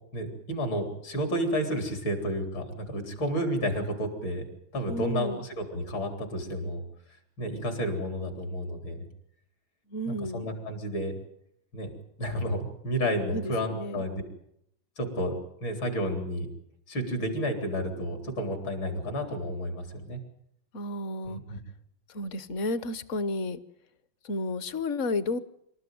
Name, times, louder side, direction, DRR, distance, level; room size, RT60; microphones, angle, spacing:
voice 1, 0.1-4.5 4.7-6.8 7.4-9.1 10.1-11.1 11.7-11.9 12.2-14.2 15.0-15.3 15.6-16.5 16.9-20.2 21.2-21.6, equal, 75° left, 4 dB, 4.6 m, -31 dB
voice 2, 4.9-5.4 9.9-10.5 13.3-14.0 20.7-21.4 22.1-23.6 24.2-25.4, left 2 dB, 50° left, 15 dB, 1.1 m, -32 dB
26.0 x 13.5 x 9.2 m, 0.77 s
omnidirectional pair, 2.2 m